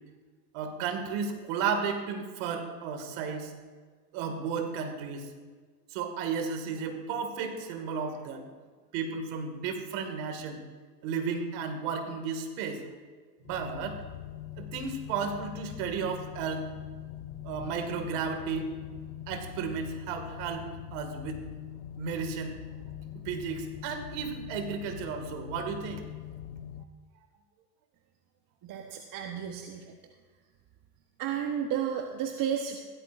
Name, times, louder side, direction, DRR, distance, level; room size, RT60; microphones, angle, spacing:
voice 1, 0.5-3.5 4.1-5.3 5.9-8.5 8.9-10.6 11.0-12.8 13.4-14.0 14.6-16.6 17.4-18.7 19.3-21.4 22.0-22.6 23.3-26.0, right 6 dB, 60° right, 6 dB, 2.0 m, -33 dB
sound 1, 13.4-26.8, left 10 dB, 55° left, 0.7 m, -42 dB
voice 2, 28.6-29.9 31.2-32.8, right 8 dB, 40° right, 3 dB, 1.1 m, -32 dB
15.5 x 13.0 x 2.5 m, 1.5 s
hypercardioid pair, 100°, 49 cm